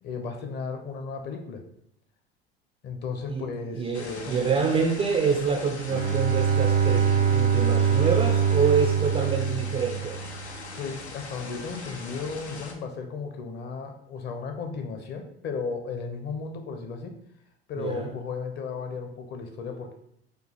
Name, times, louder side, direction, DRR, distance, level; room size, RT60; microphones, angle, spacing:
voice 1, 0.0-1.6 2.8-4.4 10.8-17.1 17.7-19.9, left 5 dB, 30° left, 5 dB, 0.6 m, -35 dB
voice 2, 3.7-10.2 17.8-18.1, right 5 dB, 20° right, 2 dB, 0.3 m, -26 dB
sound 1, 3.9-12.7, left 3 dB, 90° left, 0.5 m, -41 dB
Bowed string instrument, 5.9-10.5, right 7 dB, 80° right, 0.5 m, -23 dB
4.5 x 2.3 x 3.2 m, 0.71 s
figure-of-eight pair, 75°, 32 cm